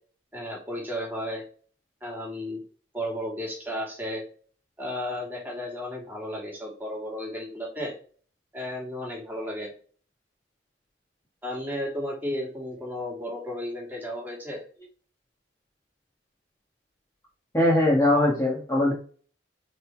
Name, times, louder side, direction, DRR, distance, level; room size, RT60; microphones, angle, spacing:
voice 1, 0.3-1.4 2.0-2.6 2.9-4.2 4.8-8.0 8.5-9.7 11.4-14.6, left 1 dB, 10° right, -2 dB, 2.5 m, -33 dB
voice 2, 17.5-18.9, left 1 dB, 15° left, -4 dB, 1.6 m, -21 dB
5.3 x 3.9 x 4.5 m, 0.43 s
head